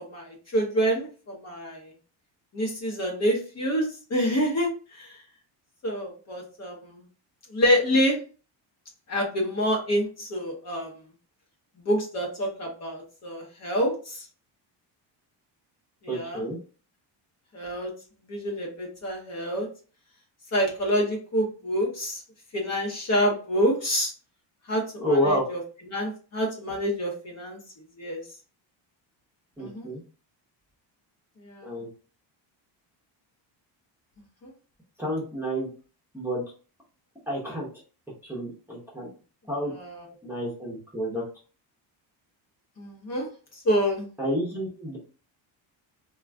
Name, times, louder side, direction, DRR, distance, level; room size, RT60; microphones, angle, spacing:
voice 1, 0.1-1.8 2.5-4.7 5.0-5.1 5.8-7.0 7.5-8.2 9.1-10.9 11.9-14.2 16.0-16.4 17.5-17.9 18.3-19.7 20.5-22.2 22.5-24.1 24.7-25.6 25.9-27.6 28.0-28.2 29.6-29.9 31.5-31.7 39.8-39.9 42.8-43.3 43.7-44.1, equal, 35° left, 0 dB, 0.7 m, -27 dB
voice 2, 16.1-16.6 25.0-25.5 29.6-30.0 31.6-31.9 35.0-35.7 36.1-36.4 37.3-37.7 38.2-39.1 39.5-39.7 40.2-41.2 44.2-45.0, equal, 5° right, -6 dB, 0.7 m, -29 dB
2.5 x 2.3 x 3.3 m, 0.37 s
cardioid pair, 165°, 46 cm